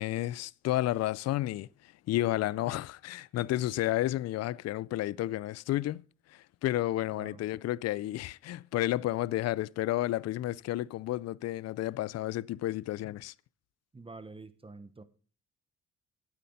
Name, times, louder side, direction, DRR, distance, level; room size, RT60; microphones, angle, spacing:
voice 1, 0.0-6.0 6.3-13.3, left 15 dB, 60° left, 0.4 m, -31 dB
voice 2, 13.9-15.0, right 3 dB, 20° right, 1.1 m, -47 dB
9.6 x 8.5 x 6.7 m
cardioid pair, 90°, 30 cm